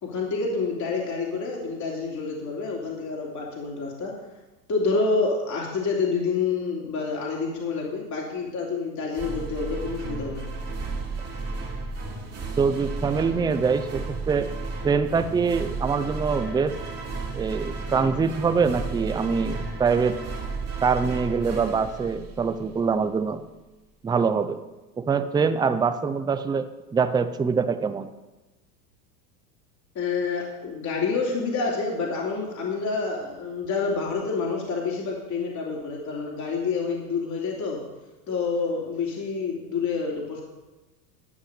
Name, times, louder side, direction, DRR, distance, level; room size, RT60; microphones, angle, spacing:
voice 1, 0.0-4.1 4.7-10.5 29.9-37.8 38.3-40.4, left 4 dB, 35° left, -2 dB, 2.8 m, -28 dB
sound 1, 9.1-22.8, right 3 dB, 30° right, 3.3 m, -33 dB
voice 2, 12.6-14.5 14.8-16.8 17.3-20.2 20.8-23.4 24.0-24.6 25.0-26.7 26.9-28.1, right 5 dB, 10° right, 10 dB, 0.5 m, -24 dB
12.0 x 5.6 x 8.0 m, 1.1 s
hypercardioid pair, 95°, 50 cm